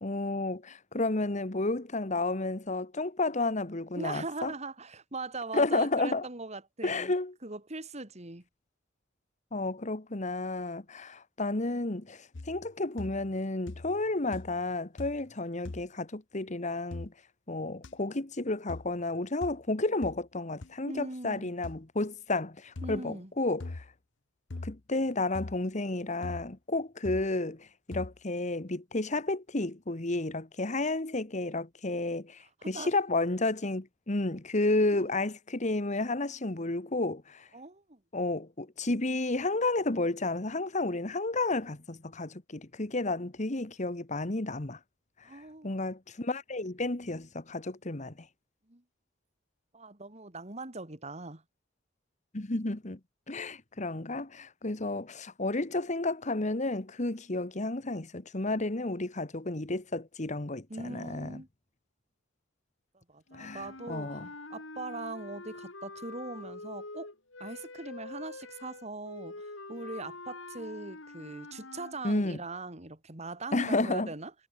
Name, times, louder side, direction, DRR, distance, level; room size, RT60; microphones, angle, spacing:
voice 1, 0.0-4.5 5.5-6.2 6.8-7.3 9.5-17.1 17.5-23.8 24.6-37.5 38.1-44.8 45.3-48.1 52.3-53.0 53.3-61.4 63.4-64.3 72.0-72.4 73.5-74.1, left 2 dB, 40° left, 1.4 m, -32 dB
voice 2, 4.0-7.1 7.4-8.4 20.9-21.5 22.8-23.3 32.6-32.9 34.9-35.1 37.5-38.0 45.2-45.7 48.7-48.8 49.7-51.4 60.7-61.5 63.1-64.2 64.5-67.1 67.4-74.3, right 2 dB, 35° right, 2.5 m, -40 dB
sound 1, 12.3-12.7 13.0-13.4 13.7-14.1 14.3-14.7 15.0-15.3 15.6-15.9 16.9-17.1 17.8-17.9 18.7-18.9 19.4-19.6 20.0-20.2 20.6-20.7 21.6-21.8 22.8-23.0 23.6-23.9 24.5-24.8 25.3-25.6 26.2-26.5 27.0-27.3 27.9-28.2, left 2 dB, 70° left, 0.9 m, -41 dB
sound 2, 63.3-72.0, left 2 dB, 85° left, 5.1 m, -45 dB
head